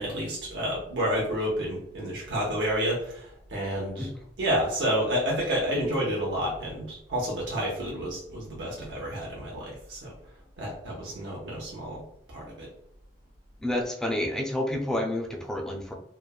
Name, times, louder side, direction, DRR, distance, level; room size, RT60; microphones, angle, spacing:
voice 1, 0.0-4.1 4.4-10.1 10.6-12.0 12.3-12.7, equal, 85° right, -3 dB, 0.7 m, -30 dB
voice 2, 13.6-16.0, left 1 dB, 5° left, 2 dB, 0.3 m, -29 dB
3.0 x 2.1 x 2.3 m, 0.72 s
head